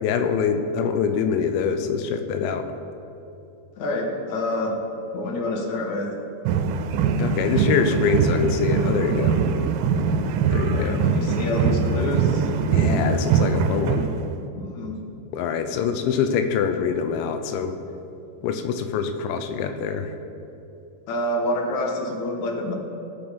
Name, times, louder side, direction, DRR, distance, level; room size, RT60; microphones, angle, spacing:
voice 1, 0.0-2.7 7.2-9.4 10.5-11.1 12.7-14.1 15.3-17.8 18.4-20.1, left 6 dB, 85° left, 7 dB, 3.1 m, -24 dB
voice 2, 3.8-4.7 5.1-6.1 10.7-12.5 14.6-15.0 21.1-22.7, left 1 dB, 65° left, 1 dB, 2.0 m, -27 dB
sound 1, 6.5-14.5, right 5 dB, 90° right, 2.9 m, -22 dB
18.5 x 7.0 x 5.2 m, 2.8 s
omnidirectional pair, 5.2 m